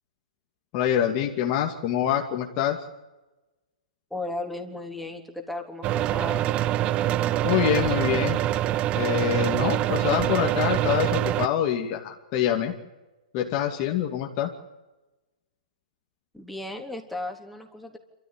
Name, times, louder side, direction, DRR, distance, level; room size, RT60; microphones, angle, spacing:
voice 1, 0.7-2.8 7.4-8.4 8.9-12.7 13.3-14.5, left 10 dB, 40° left, 1 dB, 2.6 m, -25 dB
voice 2, 4.1-6.5 16.3-18.0, left 2 dB, ahead, 2 dB, 3.6 m, -35 dB
sound 1, 5.8-11.5, right 13 dB, 30° right, 0.7 m, -25 dB
27.0 x 14.5 x 9.9 m, 1.1 s
hypercardioid pair, 125°, 4 cm